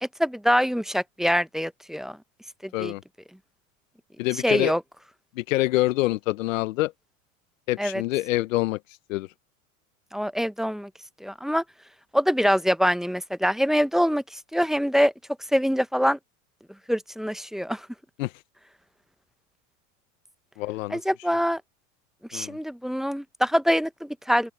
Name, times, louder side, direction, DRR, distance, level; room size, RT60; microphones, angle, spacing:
voice 1, 0.0-2.2 2.6-2.9 4.3-4.8 7.8-8.0 10.1-10.9 11.2-11.6 12.1-15.1 15.5-16.2 16.9-17.9 20.9-21.6 22.3-24.5, equal, ahead, 0.5 m, -24 dB
voice 2, 4.2-4.7 5.4-6.9 7.7-9.3 18.2-18.3 20.6-21.0 22.3-22.6, left 18 dB, 90° left, 0.6 m, -26 dB
open air
supercardioid pair, 115°, 38 cm